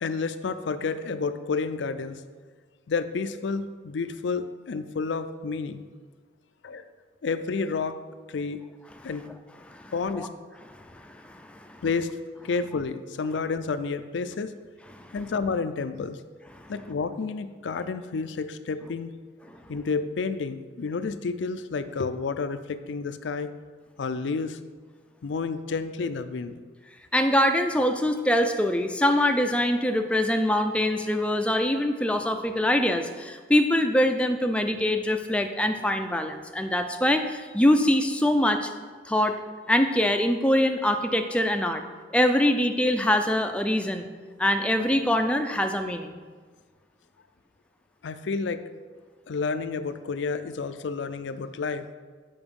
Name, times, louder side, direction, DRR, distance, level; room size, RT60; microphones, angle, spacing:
voice 1, 0.0-2.2 2.9-5.8 6.6-6.9 7.2-8.0 8.3-8.6 9.0-9.2 9.9-10.3 11.8-12.1 12.4-14.5 15.1-16.2 16.7-19.1 19.7-23.5 24.0-24.6 25.2-26.6 48.0-48.7 49.3-51.9, left 4 dB, 80° left, 11 dB, 0.4 m, -30 dB
voice 2, 10.8-11.8 14.9-15.1 27.1-38.7 39.1-39.4 39.7-41.8 42.1-44.1 44.4-46.2, left 1 dB, 5° left, 6 dB, 0.4 m, -24 dB
6.9 x 5.3 x 5.3 m, 1.5 s
head